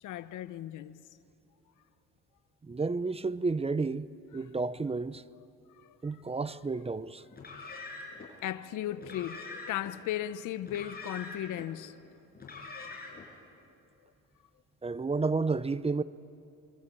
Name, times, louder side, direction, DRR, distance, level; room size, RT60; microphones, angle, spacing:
voice 1, 0.0-1.0 5.8-6.0 7.5-7.8 8.2-11.9, left 12 dB, 85° left, 0.9 m, -37 dB
voice 2, 2.6-4.1 4.3-5.2 6.0-7.2 14.8-16.0, right 4 dB, 20° right, 0.7 m, -31 dB
Car, 7.3-8.3 9.0-9.9 10.6-11.7 12.3-13.3, left 3 dB, 30° left, 7.7 m, -44 dB
26.0 x 24.0 x 9.0 m
cardioid pair, 90°, 30 cm